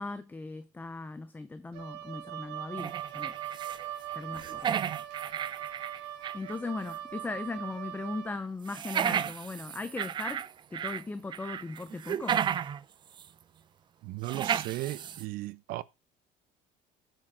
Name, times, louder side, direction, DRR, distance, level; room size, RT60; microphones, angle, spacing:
voice 1, 0.0-3.4 4.1-4.8 6.3-12.4, left 3 dB, 10° left, 0.7 m, -38 dB
Wind instrument woodwind instrument, 1.7-8.4, right 11 dB, 80° right, 1.6 m, -40 dB
sound 1, 2.8-6.5 6.9-7.0 8.7-11.0 11.3-12.8 13.2-13.3 14.2-15.2, right 9 dB, 30° right, 0.5 m, -33 dB
voice 2, 14.0-15.8, right 16 dB, 60° right, 0.8 m, -36 dB
7.6 x 7.4 x 6.1 m
cardioid pair, 155°, 16 cm